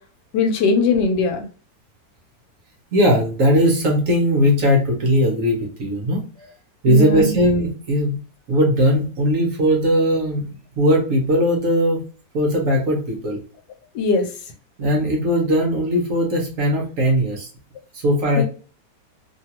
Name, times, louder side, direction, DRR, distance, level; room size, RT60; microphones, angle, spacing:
voice 1, 0.3-1.4 6.9-7.3 14.0-14.2 18.4-18.5, left 3 dB, 80° left, 6 dB, 1.3 m, -19 dB
voice 2, 2.9-6.2 6.8-8.2 8.5-10.5 10.7-12.0 12.3-13.4 14.8-17.5 17.9-18.4, equal, 60° right, 1 dB, 1.0 m, -19 dB
3.0 x 2.3 x 2.8 m, 0.37 s
omnidirectional pair, 1.8 m